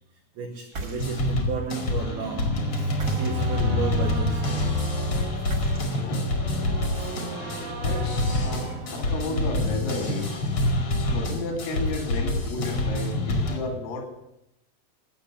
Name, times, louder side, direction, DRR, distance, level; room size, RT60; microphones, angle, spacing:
voice 1, 0.4-4.7 6.9-7.2, right 4 dB, 85° right, 2.2 m, -33 dB
sound 1, 0.6-1.4 2.8-3.7 5.4-6.2, right 2 dB, 40° right, 1.7 m, -37 dB
sound 2, 1.0-13.6, left 1 dB, 50° left, 1.6 m, -26 dB
sound 3, 1.9-9.9, right 5 dB, 60° right, 2.7 m, -39 dB
voice 2, 5.9-6.9 7.8-10.6 10.9-14.1, left 2 dB, 80° left, 5.3 m, -33 dB
17.5 x 6.6 x 9.9 m
omnidirectional pair, 5.8 m